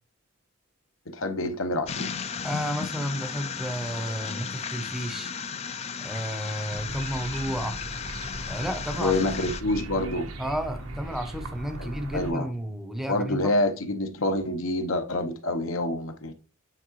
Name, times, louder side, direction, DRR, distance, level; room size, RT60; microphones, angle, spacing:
voice 1, 1.1-2.1 9.0-10.3 11.8-12.5 13.1-16.3, left 1 dB, 75° left, 1.0 m, -27 dB
sound 1, 1.9-9.6, left 6 dB, 30° left, 0.4 m, -35 dB
voice 2, 2.4-5.3 6.0-7.8 8.5-9.2 10.4-13.5, equal, ahead, 0.7 m, -32 dB
sound 2, 6.7-12.3, right 1 dB, 80° right, 1.1 m, -38 dB
8.7 x 3.6 x 3.1 m
head